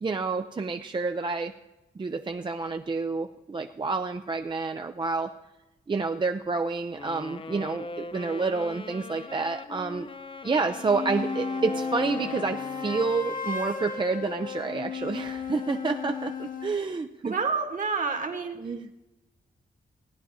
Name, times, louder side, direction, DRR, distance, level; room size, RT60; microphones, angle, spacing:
voice 1, 0.0-1.5 2.0-5.3 5.9-10.1 10.4-17.3 18.6-18.9, right 4 dB, 30° right, 6 dB, 0.5 m, -29 dB
Wind instrument woodwind instrument, 6.9-13.4, left 3 dB, 35° left, 0.5 m, -41 dB
sound 1, 10.6-16.8, left 5 dB, 60° left, 1.4 m, -34 dB
voice 2, 17.2-18.7, right 4 dB, 55° right, 6 dB, 1.7 m, -29 dB
16.0 x 9.9 x 4.1 m, 1.0 s
cardioid pair, 75°, 16 cm